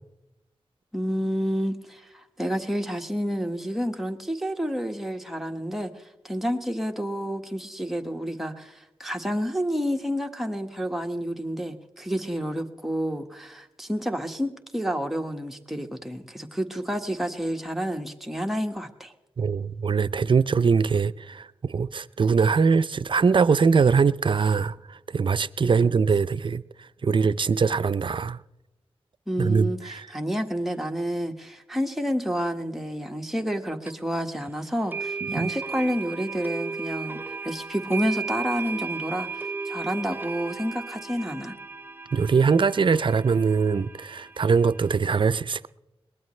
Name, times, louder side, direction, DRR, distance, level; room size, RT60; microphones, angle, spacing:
voice 1, 0.9-19.1 25.6-26.0 29.3-41.5, equal, ahead, 1.6 m, -29 dB
voice 2, 19.4-26.6 27.0-28.4 29.4-30.1 35.2-35.5 42.1-45.7, right 5 dB, 55° right, 0.5 m, -22 dB
sound 1, 33.9-34.0 34.9-45.0, right 4 dB, 20° right, 0.7 m, -35 dB
22.0 x 19.0 x 3.2 m
cardioid pair, 55°, 10 cm